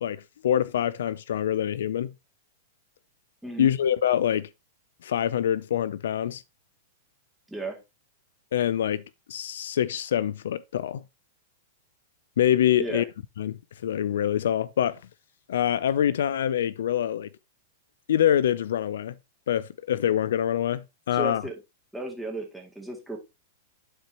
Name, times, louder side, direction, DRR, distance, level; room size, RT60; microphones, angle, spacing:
voice 1, 0.0-2.1 3.6-4.5 5.0-6.4 8.5-9.0 9.3-11.0 12.4-13.0 13.4-15.0 15.5-17.3 18.1-19.1 19.5-21.4, left 10 dB, 75° left, 0.4 m, -25 dB
voice 2, 3.4-3.7 7.5-7.8 12.8-13.0 21.1-21.5 21.9-23.2, right 1 dB, ahead, 2.2 m, -34 dB
11.5 x 4.4 x 2.9 m
hypercardioid pair, 120°, 0 cm